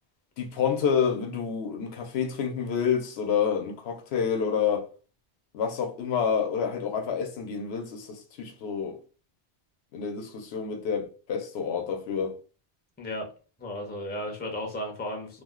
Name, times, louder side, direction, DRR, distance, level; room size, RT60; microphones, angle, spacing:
voice 1, 0.4-4.9 5.5-9.0 9.9-12.4, left 7 dB, 75° left, 0.8 m, -28 dB
voice 2, 13.0-13.3 13.6-15.4, left 1 dB, 10° left, 0.5 m, -34 dB
2.4 x 2.1 x 3.5 m
omnidirectional pair, 1.1 m